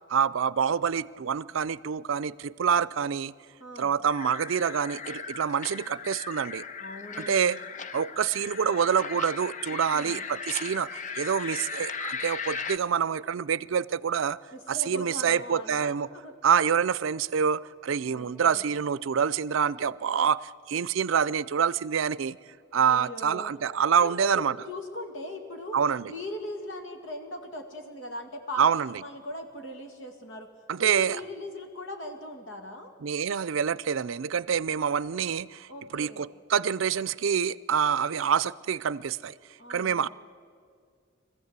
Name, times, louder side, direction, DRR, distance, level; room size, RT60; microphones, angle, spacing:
voice 1, 0.1-3.3 3.8-6.6 7.2-7.6 7.9-14.4 14.7-16.1 16.4-22.4 22.7-24.6 25.7-26.1 28.6-28.9 30.7-31.2 33.0-39.3 39.7-40.1, right 7 dB, 85° right, 19 dB, 0.5 m, -26 dB
voice 2, 3.6-3.9 6.8-7.5 9.7-10.2 14.5-16.3 18.0-18.6 22.8-23.5 24.0-25.8 26.1-30.5 30.8-32.9 35.7-36.2 39.6-40.1, left 1 dB, 75° left, 5 dB, 2.3 m, -40 dB
sound 1, 4.0-12.8, left 5 dB, 40° left, 0.6 m, -38 dB
22.5 x 15.0 x 8.2 m, 2.2 s
head